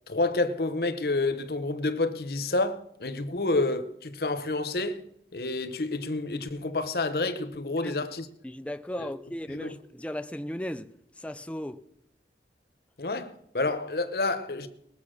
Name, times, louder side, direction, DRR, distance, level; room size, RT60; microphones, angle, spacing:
voice 1, 0.1-5.0 5.3-8.3 9.0-9.1 9.5-9.7 13.0-14.7, left 2 dB, 55° left, 0.9 m, -29 dB
voice 2, 8.4-11.8, left 1 dB, 5° left, 0.4 m, -36 dB
20.0 x 7.1 x 6.3 m
head